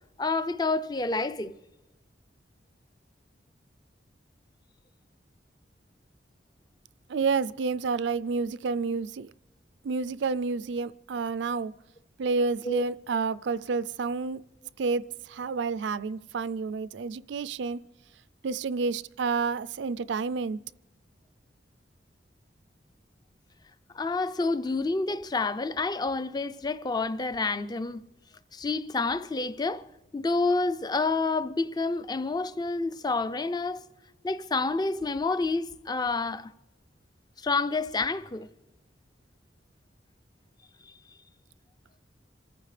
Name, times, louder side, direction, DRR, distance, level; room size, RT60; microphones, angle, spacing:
voice 1, 0.2-1.5 12.6-12.8 23.9-28.0 28.5-29.9 30.1-33.8 34.2-36.5 37.4-38.5, left 3 dB, 20° left, 0.5 m, -28 dB
voice 2, 7.1-9.3 9.8-11.7 12.2-14.4 14.8-17.8 18.4-20.6, right 4 dB, 70° right, 0.4 m, -29 dB
27.5 x 14.5 x 3.3 m
head